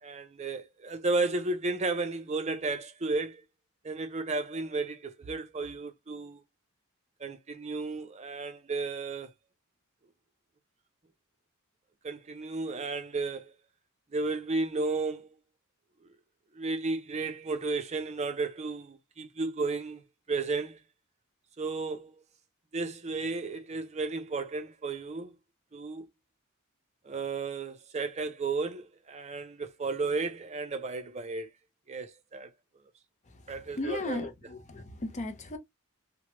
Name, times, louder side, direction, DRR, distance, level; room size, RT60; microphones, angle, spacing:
voice 1, 0.0-3.4 3.8-6.4 7.2-9.3 12.0-13.5 14.1-15.3 16.5-20.0 20.3-20.8 21.6-22.2 22.7-25.3 25.7-26.1 27.0-31.5 31.9-32.5 32.8-32.9 33.5-34.3, right 3 dB, 30° right, 0.5 m, -33 dB
voice 2, 33.7-35.6, left 2 dB, 35° left, 0.6 m, -35 dB
3.0 x 2.1 x 2.9 m
head